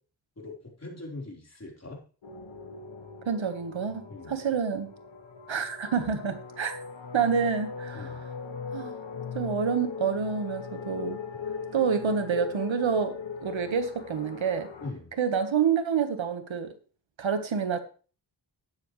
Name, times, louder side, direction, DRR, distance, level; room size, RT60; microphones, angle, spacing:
voice 1, 0.4-2.0 4.1-4.3 7.9-8.2 11.3-11.4 14.8-15.1, left 2 dB, 35° left, -1 dB, 4.2 m, -41 dB
sound 1, 2.2-14.9, left 6 dB, 80° left, 1.9 m, -39 dB
voice 2, 3.2-4.9 5.5-6.8 7.1-8.2 8.7-9.0 9.3-11.2 11.7-13.2 13.4-14.7 15.2-16.7 17.2-17.8, right 6 dB, 85° right, 8 dB, 1.5 m, -28 dB
12.0 x 9.7 x 3.2 m, 0.38 s
cardioid pair, 65°, 45 cm